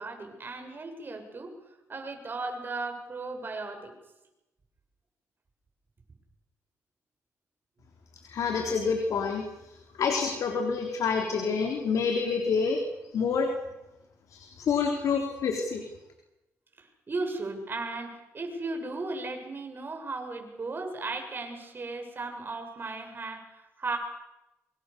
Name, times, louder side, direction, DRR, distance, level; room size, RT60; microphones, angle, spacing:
voice 1, 0.0-1.5 1.9-3.9 16.8-24.0, right 3 dB, 40° right, 4 dB, 7.1 m, -36 dB
voice 2, 8.3-9.4 10.0-12.8 13.1-13.5 14.3-15.8, left 5 dB, 75° left, 3 dB, 3.8 m, -27 dB
25.5 x 24.5 x 7.0 m, 0.95 s
cardioid pair, 80°, 6 cm